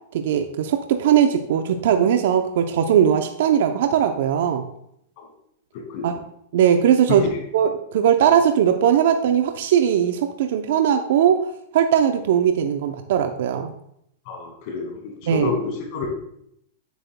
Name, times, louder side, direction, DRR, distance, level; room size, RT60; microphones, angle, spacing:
voice 1, 0.1-4.6 6.0-6.1 6.5-7.3 7.5-11.5 11.7-13.7 15.3-15.5, right 9 dB, 70° right, 7 dB, 0.6 m, -19 dB
voice 2, 5.7-6.1 7.1-7.4 14.3-16.1, left 5 dB, 55° left, 2 dB, 2.0 m, -29 dB
9.1 x 7.8 x 2.2 m, 0.73 s
hypercardioid pair, 125°, 0 cm